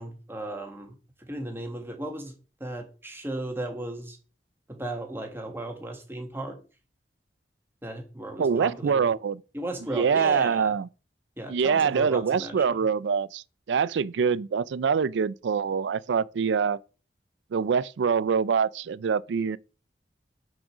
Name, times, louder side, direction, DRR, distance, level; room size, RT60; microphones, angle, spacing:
voice 1, 0.0-2.3 2.6-4.2 4.7-6.6 7.8-9.1 9.5-10.7 11.4-12.8, right 1 dB, 15° right, 1.6 m, -36 dB
voice 2, 8.4-9.4 9.9-10.9 11.5-16.8 17.5-19.6, right 6 dB, 85° right, 0.4 m, -25 dB
6.3 x 4.9 x 6.0 m
head